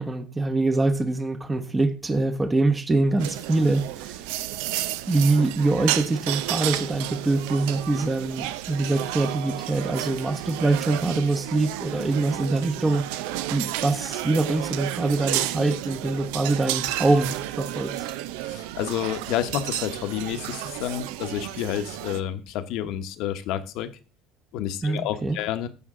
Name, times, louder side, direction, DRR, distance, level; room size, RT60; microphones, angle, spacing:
voice 1, 0.0-4.2 5.1-13.0 13.5-18.1 24.8-25.4, right 2 dB, 15° right, 0.9 m, -24 dB
sound 1, 3.2-22.2, right 14 dB, 90° right, 0.5 m, -32 dB
voice 2, 18.5-23.9 24.5-25.7, left 11 dB, 70° left, 1.1 m, -29 dB
14.0 x 5.3 x 3.7 m
cardioid pair, 120°, 0 cm